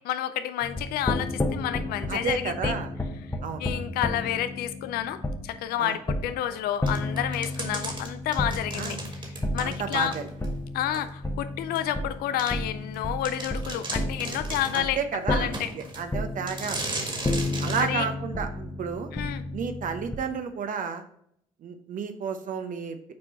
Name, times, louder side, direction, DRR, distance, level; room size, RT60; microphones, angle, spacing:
voice 1, 0.1-2.8 3.6-9.2 9.5-10.1 10.7-15.0 15.3-15.7 17.8-18.1 19.1-19.4, left 11 dB, 65° left, 12 dB, 0.5 m, -30 dB
sound 1, 0.6-20.2, left 1 dB, 15° left, 1.0 m, -32 dB
voice 2, 2.1-2.9 3.4-3.6 5.8-6.0 7.7-7.8 8.8-8.9 9.6-10.3 14.7-16.8 17.6-19.1 19.5-21.0 21.6-23.0, right 6 dB, 50° right, 8 dB, 0.7 m, -31 dB
sound 2, 6.9-10.5 10.9-11.0 11.7-11.8 12.4-12.5 12.9-13.0 13.2-14.9 15.5-16.0 16.5-17.9, right 2 dB, 30° right, 1.8 m, -36 dB
6.3 x 4.5 x 4.1 m, 0.72 s
hypercardioid pair, 50°, 17 cm